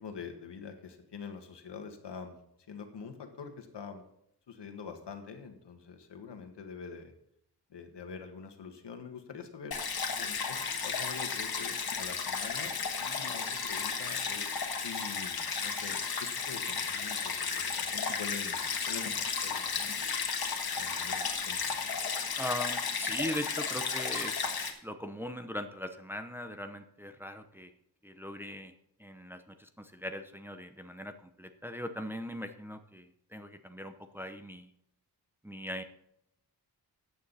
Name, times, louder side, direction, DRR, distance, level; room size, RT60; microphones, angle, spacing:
voice 1, 0.0-2.4 2.7-4.0 4.5-7.1 7.7-9.8 10.2-10.6 10.8-20.1 20.7-21.6, left 5 dB, 90° left, 6 dB, 1.9 m, -45 dB
Stream, 9.7-24.7, left 5 dB, 60° left, 1.6 m, -34 dB
voice 2, 22.4-27.7 28.0-28.7 29.0-34.7 35.4-35.8, left 1 dB, 5° right, 7 dB, 0.7 m, -40 dB
14.0 x 9.2 x 4.2 m, 0.76 s
wide cardioid pair, 180°, 41 cm